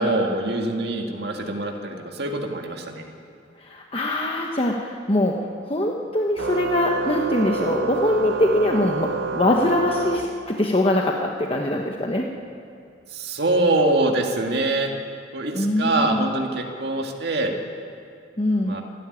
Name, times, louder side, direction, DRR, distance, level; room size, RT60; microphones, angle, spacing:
voice 1, 0.0-3.0 13.1-14.9 15.3-17.5 18.6-18.8, right 2 dB, 55° right, 2 dB, 2.0 m, -24 dB
voice 2, 3.6-5.3 5.6-12.3 15.5-16.2 18.4-18.8, left 1 dB, 30° left, 1 dB, 1.2 m, -23 dB
Organ, 6.4-10.9, right 4 dB, 75° right, 0.8 m, -28 dB
26.0 x 12.0 x 10.0 m, 2.4 s
head